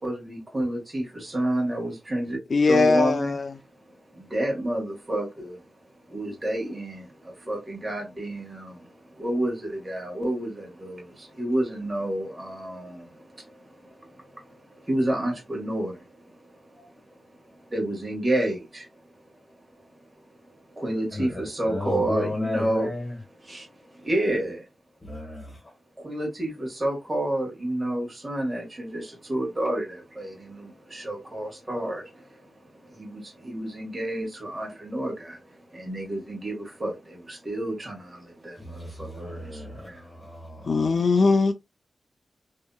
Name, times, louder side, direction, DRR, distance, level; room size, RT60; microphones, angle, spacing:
voice 1, 0.0-2.4 2.7-3.3 3.9-5.7 6.0-22.9 23.4-24.6 26.0-40.2, right 1 dB, 30° right, 1.5 m, -30 dB
voice 2, 2.5-3.5 40.7-41.5, left 4 dB, 60° left, 0.3 m, -20 dB
voice 3, 21.1-23.2 25.0-25.7 38.6-40.9, left 1 dB, 35° left, 1.2 m, -34 dB
2.8 x 2.6 x 2.2 m
cardioid pair, 55°, 0 cm